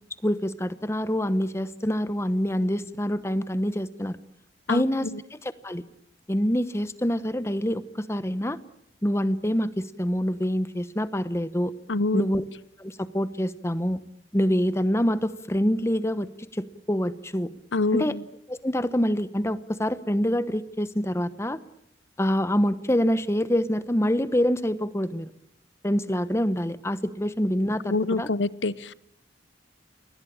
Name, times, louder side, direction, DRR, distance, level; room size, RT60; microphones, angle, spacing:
voice 1, 0.2-4.2 4.7-5.1 5.6-5.8 6.3-8.6 9.0-11.7 12.1-12.4 12.8-14.0 14.3-16.3 16.5-17.5 17.9-18.1 18.5-21.6 22.2-25.3 25.8-28.3, equal, 15° left, 14 dB, 1.1 m, -26 dB
voice 2, 4.7-5.2 11.9-12.4 17.7-18.2 27.8-28.9, left 3 dB, 85° left, 17 dB, 1.0 m, -26 dB
28.5 x 21.0 x 8.8 m, 0.72 s
head